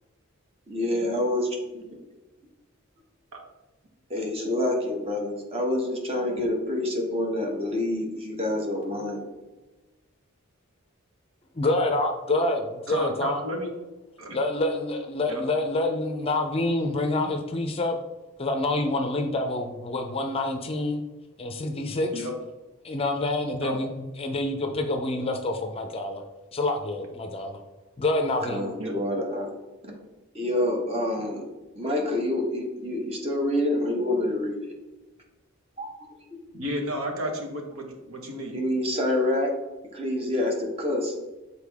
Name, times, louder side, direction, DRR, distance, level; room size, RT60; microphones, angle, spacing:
voice 1, 0.7-1.8 4.1-9.2 28.4-29.5 29.8-30.0 30.3-31.4 31.7-34.7 35.8-35.9 38.5-39.5 39.9-41.1, left 1 dB, 25° right, 0 dB, 1.3 m, -27 dB
voice 2, 11.6-13.4 14.3-18.0 18.4-21.0 21.4-22.3 22.8-26.2 26.5-27.6 28.0-28.6, left 2 dB, 25° left, 5 dB, 0.5 m, -27 dB
voice 3, 12.9-13.7 14.2-14.4 15.3-15.4 22.1-22.3 23.6-23.8 28.8-28.9 36.5-38.5, equal, 75° right, 1 dB, 1.2 m, -32 dB
6.6 x 4.3 x 3.5 m, 1.1 s
head